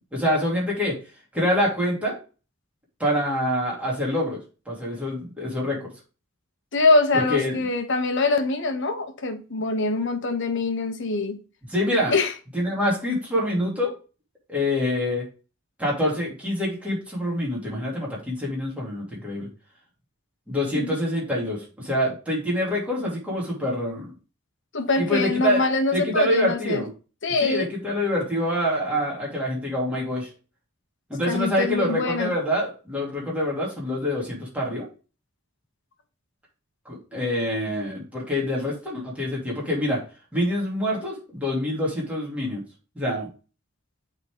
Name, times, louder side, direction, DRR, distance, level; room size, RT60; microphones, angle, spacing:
voice 1, 0.1-1.0 1.3-2.2 3.0-4.4 4.7-5.9 7.3-7.5 11.7-12.1 12.5-13.9 14.5-15.2 15.8-19.5 20.5-24.1 25.0-25.6 25.9-26.9 27.4-30.3 31.1-34.9 36.8-40.0 40.3-42.6 42.9-43.3, left 1 dB, 5° right, 2.9 m, -26 dB
voice 2, 6.7-11.4 12.1-12.3 20.7-21.0 24.7-26.8 27.2-27.7 31.3-32.3, left 3 dB, 65° left, 1.1 m, -24 dB
8.5 x 4.0 x 3.6 m
head